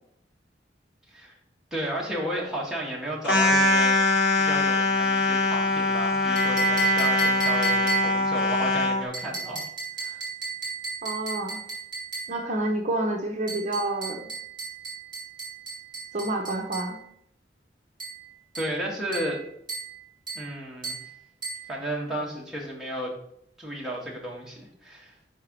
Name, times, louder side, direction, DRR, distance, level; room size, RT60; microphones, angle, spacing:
voice 1, 1.7-4.0 4.4-9.6 10.0-10.2 18.5-19.4 20.3-21.0 21.7-23.1 23.6-25.1, right 1 dB, 5° right, -4 dB, 1.6 m, -33 dB
sound 1, 3.2-9.0, left 3 dB, 65° left, 1.2 m, -23 dB
sound 2, 6.4-8.3 9.1-12.4 13.5-16.9 18.0-18.2 18.5-18.8 19.1-19.4 19.7-20.0 20.3-20.5 20.8-21.1 21.4-21.7, right 5 dB, 25° right, 3.0 m, -31 dB
voice 2, 11.0-11.6 12.3-14.3 16.1-17.0, right 2 dB, 40° right, 1 dB, 0.8 m, -28 dB
5.0 x 4.6 x 6.0 m, 0.71 s
head